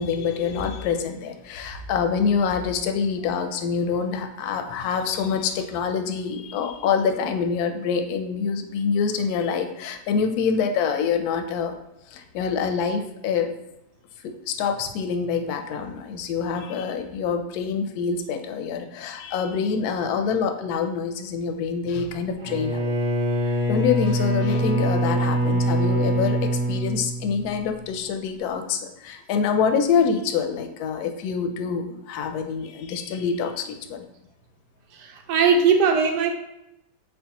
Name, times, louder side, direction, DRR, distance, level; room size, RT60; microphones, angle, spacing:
voice 1, 0.0-11.7 12.1-13.5 14.2-22.9 23.4-34.0, left 6 dB, 70° left, 6 dB, 1.0 m, -26 dB
Bowed string instrument, 22.4-27.7, right 1 dB, 35° right, 0.8 m, -24 dB
voice 2, 34.9-36.3, right 5 dB, 75° right, 4 dB, 1.2 m, -20 dB
4.5 x 3.6 x 2.8 m, 0.87 s
omnidirectional pair, 1.9 m